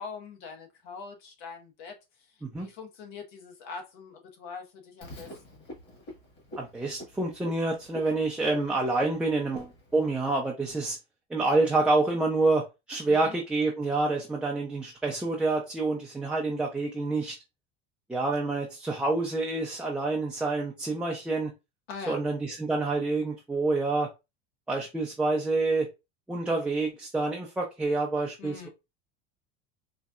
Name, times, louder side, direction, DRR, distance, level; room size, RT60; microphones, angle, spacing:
voice 1, 0.0-5.6 13.1-13.3 21.9-22.2 28.4-28.7, left 5 dB, 70° left, 1.3 m, -43 dB
Frog, 5.0-10.2, equal, 35° left, 1.5 m, -46 dB
voice 2, 6.6-11.0 11.3-17.3 18.1-21.5 22.1-24.1 24.7-25.9 26.3-28.7, right 3 dB, 5° right, 0.4 m, -27 dB
4.2 x 2.7 x 2.4 m
cardioid pair, 155°, 31 cm